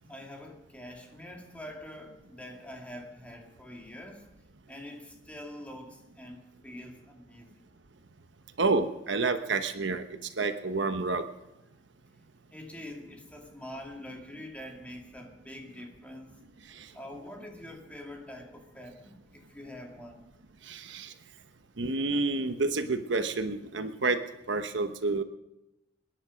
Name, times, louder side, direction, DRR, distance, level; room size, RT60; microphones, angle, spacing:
voice 1, 0.0-4.3 4.7-7.6 12.5-16.4 16.9-20.3, left 1 dB, 5° left, 1 dB, 2.4 m, -45 dB
voice 2, 8.6-11.2 16.7-16.9 20.6-21.1 21.8-24.2 24.5-25.2, right 3 dB, 75° right, 8 dB, 1.1 m, -29 dB
27.0 x 10.5 x 5.1 m, 0.92 s
head